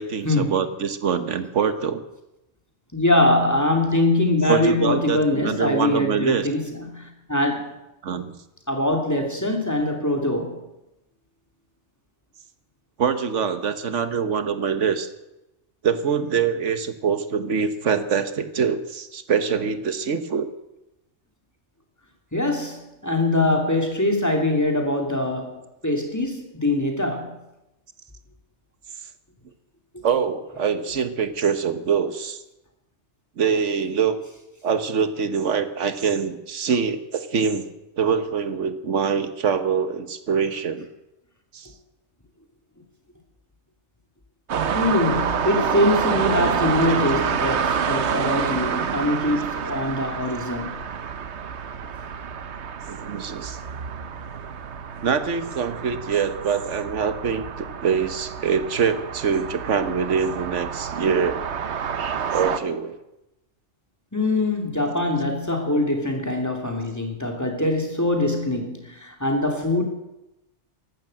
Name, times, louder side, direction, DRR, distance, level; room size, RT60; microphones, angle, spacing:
voice 1, 0.0-2.0 4.5-6.5 8.0-8.3 13.0-15.1 15.8-20.5 30.0-32.4 33.4-34.2 34.6-37.7 38.0-40.9 41.5-41.7 46.9-47.0 52.9-53.6 55.0-61.4 62.0-63.0, right 6 dB, 90° right, 10 dB, 1.5 m, -24 dB
voice 2, 2.9-7.7 8.7-10.6 22.3-27.3 29.9-30.0 44.6-50.8 64.1-69.8, left 1 dB, 15° left, 2 dB, 2.8 m, -23 dB
sound 1, 44.5-62.6, right 7 dB, 70° right, 1.2 m, -28 dB
15.0 x 12.0 x 7.8 m, 0.92 s
omnidirectional pair, 1.2 m